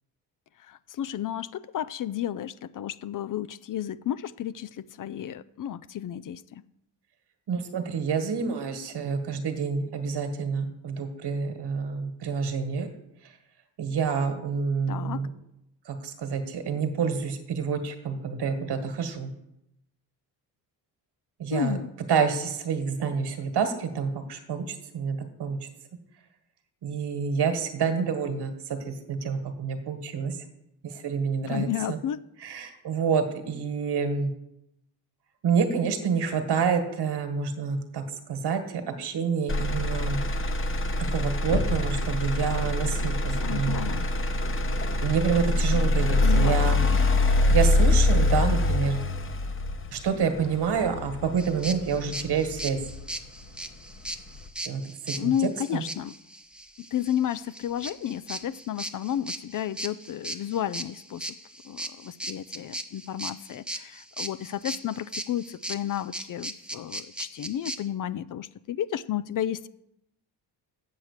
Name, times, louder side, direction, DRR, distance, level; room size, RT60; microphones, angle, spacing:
voice 1, 0.6-6.6 14.9-15.3 21.5-21.9 31.4-32.2 43.4-44.1 46.2-47.0 55.1-56.1 56.8-61.4 61.6-69.7, left 10 dB, 50° left, 15 dB, 0.5 m, -32 dB
voice 2, 7.5-12.9 13.2-13.3 13.8-15.3 15.8-19.3 21.4-21.8 22.1-25.7 26.8-30.4 30.8-32.0 32.4-34.3 35.4-40.2 41.0-43.9 45.0-46.8 47.5-49.0 49.9-52.8 54.6-55.3 55.7-55.8, right 6 dB, 65° right, 7 dB, 1.7 m, -28 dB
Motor vehicle (road), 39.5-53.5 54.0-54.5, left 2 dB, 30° left, 1.0 m, -25 dB
sound 1, 51.4-67.8, right 1 dB, ahead, 0.9 m, -37 dB
7.9 x 7.7 x 6.6 m, 0.83 s
cardioid pair, 80°, 42 cm